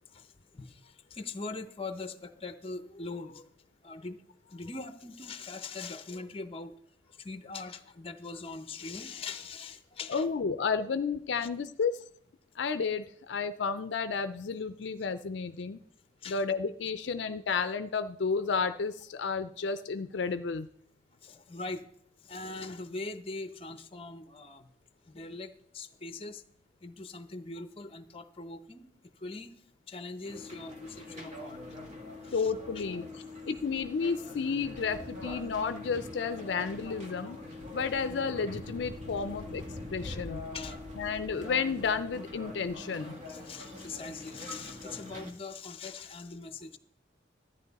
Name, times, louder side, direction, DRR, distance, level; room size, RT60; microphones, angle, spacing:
voice 1, 0.1-3.5 3.8-4.2 4.5-6.7 7.1-10.3 11.4-11.5 16.2-16.4 21.2-21.8 22.2-24.7 25.1-26.4 26.8-28.9 29.2-29.5 29.9-31.6 32.2-32.8 34.2-34.3 40.5-40.8 43.3-46.8, left 3 dB, 30° left, 10 dB, 0.7 m, -42 dB
voice 2, 10.1-12.0 12.6-15.8 16.3-20.7 32.3-33.1 33.5-37.4 37.7-39.6 39.9-40.4 41.0-43.2, left 5 dB, 65° left, 10 dB, 0.4 m, -32 dB
sound 1, 30.2-45.3, left 2 dB, 40° right, 1.5 m, -43 dB
13.0 x 9.7 x 4.1 m, 0.69 s
head